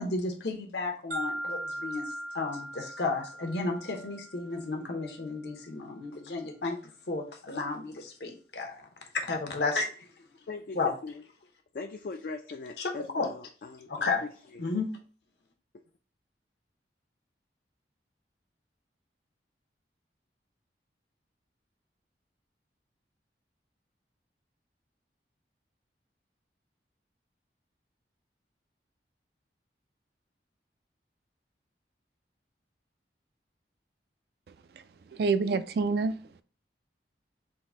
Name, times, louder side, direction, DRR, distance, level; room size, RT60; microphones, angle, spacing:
voice 1, 0.0-6.8 7.1-8.8 9.2-9.9 10.8-10.9 12.8-12.9 13.1-13.3 13.9-14.2 14.6-15.0, left 3 dB, 70° left, 0.8 m, -32 dB
sound 1, 1.1-5.1, right 1 dB, 90° right, 1.4 m, -39 dB
voice 2, 10.5-11.2 11.7-14.1 14.5-14.6, left 4 dB, 50° left, 0.3 m, -40 dB
voice 3, 35.1-36.4, right 4 dB, 60° right, 0.3 m, -27 dB
3.7 x 2.6 x 3.6 m
head